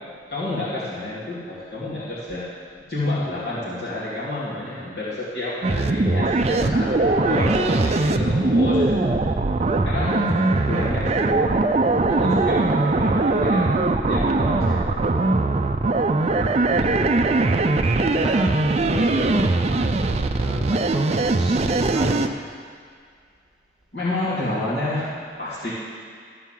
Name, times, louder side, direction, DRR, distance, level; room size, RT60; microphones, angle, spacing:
voice 1, 0.3-2.6 2.9-9.0 9.8-10.4 10.7-11.7 12.0-13.8 14.1-15.0 23.9-25.1 25.4-25.7, left 2 dB, 60° left, -11 dB, 2.7 m, -29 dB
sound 1, 5.6-22.3, right 2 dB, 35° right, 0.4 m, -21 dB
voice 2, 10.2-10.8 16.4-17.5 18.0-22.3, equal, ahead, -5 dB, 1.6 m, -34 dB
13.5 x 4.6 x 7.5 m, 2.1 s
head